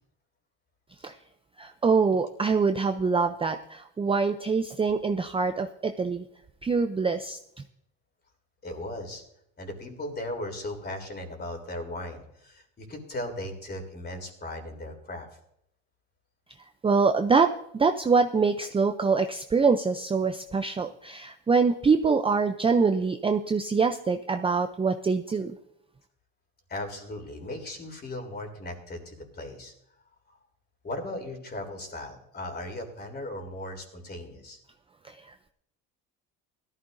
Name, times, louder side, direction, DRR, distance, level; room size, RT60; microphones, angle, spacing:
voice 1, 1.6-6.2 6.6-7.4 16.8-25.5 35.0-35.5, right 4 dB, 15° right, 7 dB, 0.5 m, -24 dB
voice 2, 8.6-9.2 9.6-15.3 26.7-29.7 30.3-30.4 30.8-34.6, left 1 dB, 25° left, 3 dB, 3.4 m, -37 dB
17.5 x 13.5 x 2.6 m, 0.75 s
supercardioid pair, 105°, 36 cm